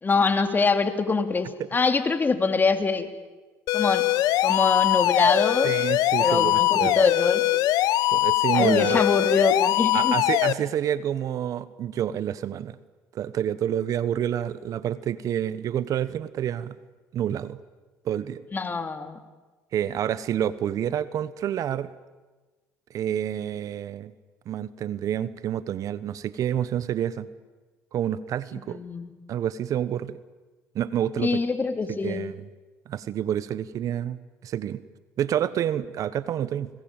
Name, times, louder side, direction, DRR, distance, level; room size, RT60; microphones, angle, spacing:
voice 1, 0.0-3.1 3.7-4.0 4.4-5.7 6.2-7.4 8.5-10.2 18.5-19.2 28.7-29.1 31.2-32.2, left 4 dB, 30° left, 8 dB, 2.9 m, -24 dB
sound 1, 3.7-10.5, left 16 dB, 75° left, 1.0 m, -22 dB
voice 2, 5.6-7.0 8.1-9.0 9.9-12.8 13.1-16.8 17.1-17.6 18.0-18.4 19.7-21.9 22.9-24.1 24.5-27.3 27.9-28.8 29.3-30.2 30.7-31.4 31.9-32.5 32.9-34.8 35.2-36.7, right 10 dB, 60° right, 16 dB, 1.2 m, -28 dB
29.5 x 20.5 x 9.0 m, 1.3 s
supercardioid pair, 75°, 7 cm